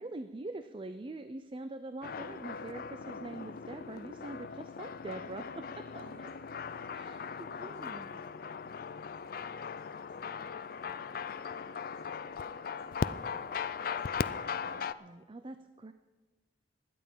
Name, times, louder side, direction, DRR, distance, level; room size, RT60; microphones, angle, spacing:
voice 1, 0.0-6.1 6.9-8.1 14.6-15.9, right 2 dB, 30° right, 10 dB, 0.5 m, -44 dB
sound 1, 2.0-14.9, left 6 dB, 55° left, 0.4 m, -39 dB
voice 2, 5.9-12.3 12.7-14.1, right 1 dB, 45° right, -2 dB, 5.1 m, -61 dB
16.0 x 11.0 x 5.5 m, 1.3 s
head